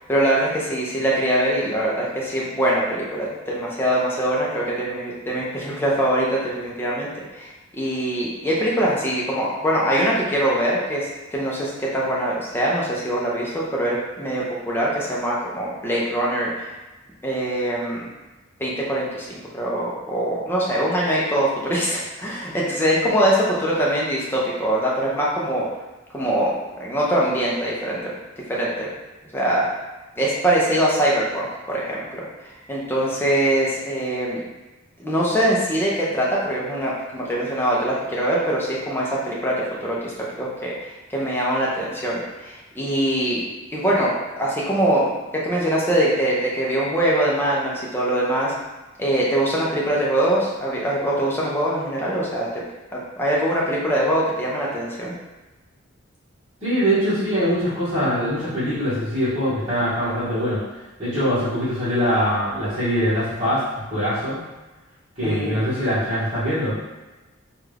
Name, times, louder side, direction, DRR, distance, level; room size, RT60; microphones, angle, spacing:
voice 1, 0.1-16.6 17.2-18.1 18.6-25.7 26.1-26.5 26.8-28.1 28.5-28.9 29.3-29.6 30.2-32.2 32.7-34.4 35.0-40.1 40.4-43.4 43.7-48.5 49.0-52.5 52.9-55.1 65.2-65.6, right 1 dB, 10° left, -5 dB, 0.6 m, -23 dB
voice 2, 56.6-60.6 61.0-63.6 63.9-64.4 65.2-66.8, equal, 30° right, -15 dB, 1.3 m, -22 dB
3.4 x 2.4 x 3.3 m, 1.1 s
head